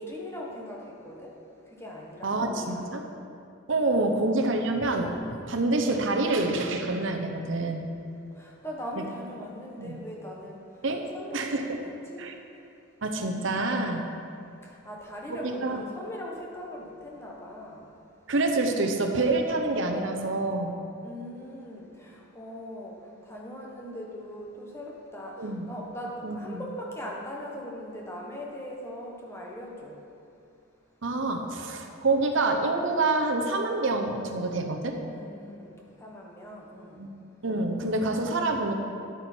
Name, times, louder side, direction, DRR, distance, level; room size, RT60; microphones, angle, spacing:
voice 1, 0.0-1.4 1.7-2.9 3.8-4.2 8.3-10.8 11.1-12.4 14.6-17.9 21.0-30.0 35.0-35.7 36.0-37.1, equal, 10° left, -2 dB, 1.2 m, -40 dB
voice 2, 2.2-3.0 3.7-7.8 9.8-10.0 10.8-11.1 11.3-11.8 12.2-12.3 13.0-14.0 15.3-15.8 18.3-20.7 25.4-25.6 26.2-26.6 31.0-35.0 37.0-37.1 37.4-38.7, right 2 dB, 65° right, 3 dB, 0.8 m, -27 dB
10.5 x 8.6 x 4.5 m, 2.6 s
head